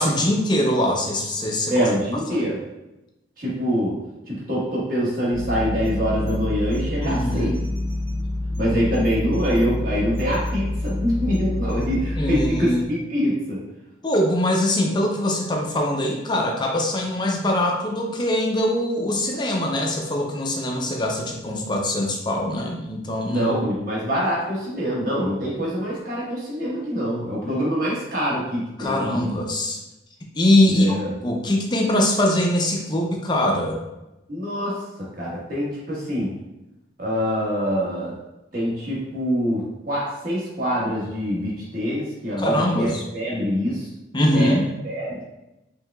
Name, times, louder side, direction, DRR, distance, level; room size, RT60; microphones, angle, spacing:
voice 1, 0.0-1.9 7.0-7.5 12.2-12.8 14.0-23.5 28.8-29.8 30.3-31.0 31.2-33.8 42.4-43.0 44.1-44.7, left 1 dB, 25° left, 0 dB, 0.5 m, -22 dB
voice 2, 1.7-2.6 3.4-4.0 4.3-7.6 8.6-13.6 23.3-29.3 30.7-31.1 34.3-36.3 37.0-38.2 38.5-43.9 44.3-45.2, equal, 45° right, -5 dB, 1.3 m, -25 dB
sound 1, 5.3-12.5, left 1 dB, 30° right, 0.8 m, -27 dB
4.6 x 3.4 x 2.3 m, 0.94 s
head